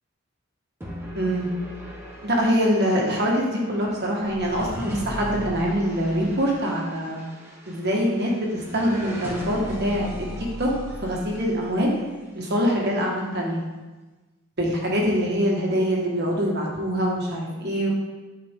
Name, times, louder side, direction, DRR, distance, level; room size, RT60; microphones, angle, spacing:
sound 1, 0.8-12.1, equal, 10° right, 1.2 m, -38 dB
voice 1, 1.2-1.5 2.2-7.2 7.7-10.3 10.6-10.7 11.0-11.9 12.3-13.6 14.6-17.9, equal, 50° right, -2 dB, 1.6 m, -24 dB
10.0 x 4.8 x 3.7 m, 1.2 s
head